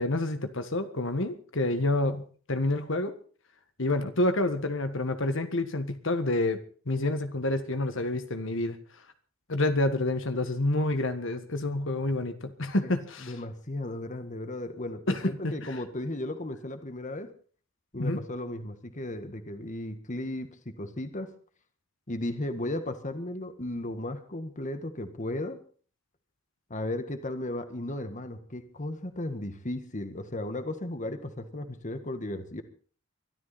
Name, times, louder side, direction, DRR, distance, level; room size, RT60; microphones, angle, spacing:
voice 1, 0.0-3.1 3.8-6.6 6.8-8.8 9.5-13.3 15.1-15.8 18.0-18.2, left 2 dB, 65° left, 9 dB, 1.7 m, -28 dB
voice 2, 13.2-17.3 17.9-21.3 22.1-25.6 26.7-32.6, left 1 dB, 35° left, 9 dB, 1.7 m, -35 dB
23.5 x 13.0 x 4.2 m, 0.42 s
head